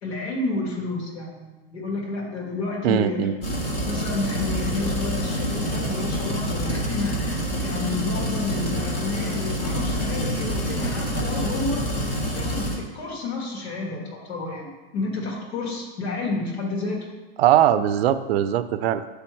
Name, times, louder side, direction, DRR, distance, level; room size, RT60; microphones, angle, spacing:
voice 1, 0.0-3.3 3.9-11.8 12.4-17.0, left 3 dB, 80° left, -2 dB, 1.9 m, -30 dB
voice 2, 2.8-3.4 17.4-19.0, right 11 dB, 75° right, 12 dB, 0.5 m, -20 dB
sound 1, 3.4-12.8, equal, 20° left, 0.7 m, -27 dB
7.0 x 3.4 x 4.5 m, 1.2 s
supercardioid pair, 165°, 31 cm